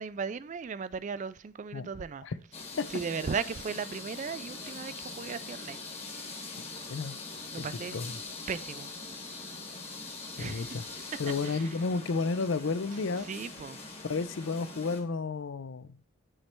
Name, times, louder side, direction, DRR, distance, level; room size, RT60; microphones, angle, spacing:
voice 1, 0.0-2.3 2.9-5.8 7.5-8.0 8.5-8.9 10.4-10.8 11.4-11.8 13.2-14.0, right 5 dB, 35° right, 0.3 m, -37 dB
sound 1, 2.5-15.0, left 3 dB, 30° left, 1.3 m, -43 dB
voice 2, 10.4-10.8 11.2-13.3 14.0-16.0, left 4 dB, 65° left, 0.5 m, -32 dB
8.8 x 3.3 x 4.4 m
head